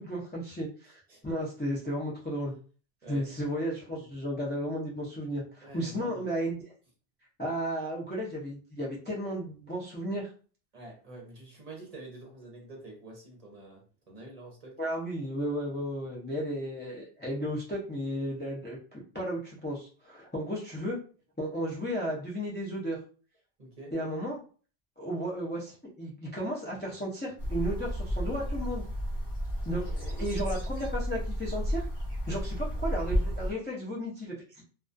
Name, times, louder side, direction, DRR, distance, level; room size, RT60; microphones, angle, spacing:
voice 1, 0.0-2.5 3.1-6.6 7.4-10.3 14.8-21.0 21.4-23.0 23.9-24.4 25.0-28.8 29.7-31.8 32.3-34.6, equal, 15° left, -5 dB, 0.3 m, -34 dB
voice 2, 0.8-1.2 3.0-3.2 4.0-4.1 5.6-6.3 10.7-14.7 23.6-23.9, right 2 dB, 40° right, -2 dB, 0.8 m, -47 dB
sound 1, 27.4-33.5, equal, 60° left, 1.1 m, -32 dB
2.3 x 2.3 x 2.5 m, 0.39 s
omnidirectional pair, 1.0 m